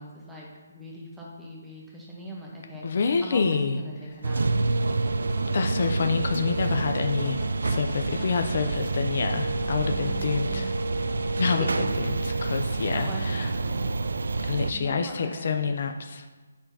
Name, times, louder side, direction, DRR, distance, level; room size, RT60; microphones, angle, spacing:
voice 1, 0.0-4.4 9.6-10.7 11.4-11.9 12.9-13.9 14.7-15.7, right 1 dB, 5° right, -4 dB, 0.8 m, -40 dB
voice 2, 2.8-3.8 5.5-10.7 11.4-13.5 14.5-16.3, left 5 dB, 40° left, 6 dB, 0.4 m, -28 dB
sound 1, 4.1-14.7, left 1 dB, 20° left, 1.7 m, -45 dB
sound 2, 4.2-14.7, right 3 dB, 75° right, 0.3 m, -28 dB
sound 3, 6.1-14.6, right 2 dB, 45° right, 0.8 m, -43 dB
9.5 x 5.8 x 2.7 m, 1.3 s
hypercardioid pair, 175°, 0 cm